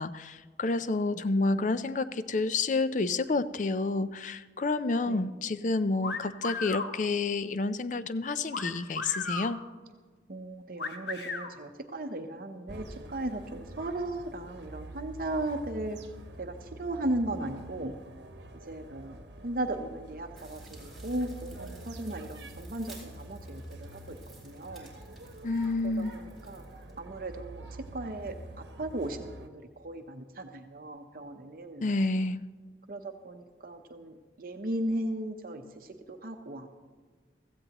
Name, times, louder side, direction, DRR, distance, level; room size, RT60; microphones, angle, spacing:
voice 1, 0.0-9.6 25.4-26.1 31.8-32.4, left 3 dB, 45° left, 14 dB, 0.4 m, -29 dB
voice 2, 5.1-5.4 10.3-16.0 16.4-17.9 18.5-24.9 25.8-26.6 27.0-31.9 32.9-36.7, right 1 dB, 50° right, 6 dB, 0.8 m, -36 dB
sound 1, 6.0-6.9 8.5-9.5 10.8-11.5, left 4 dB, 75° left, 1.1 m, -35 dB
sound 2, 12.7-29.5, right 1 dB, 80° right, 1.0 m, -46 dB
sound 3, 20.4-27.0, right 3 dB, ahead, 2.6 m, -56 dB
16.0 x 14.5 x 3.0 m, 1.5 s
head